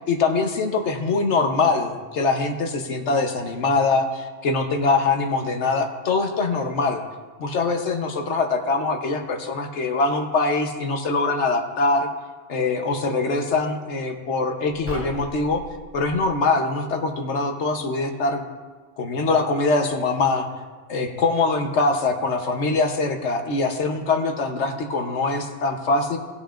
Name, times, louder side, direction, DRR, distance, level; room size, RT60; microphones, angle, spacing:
voice 1, 0.1-7.0 7.4-12.1 12.5-15.6 15.9-18.4 19.0-20.5 20.9-26.2, left 3 dB, 75° left, 5 dB, 1.3 m, -23 dB
sound 1, 14.8-16.3, equal, 10° right, 1.8 m, -38 dB
18.5 x 8.6 x 2.5 m, 1.4 s
omnidirectional pair, 1.2 m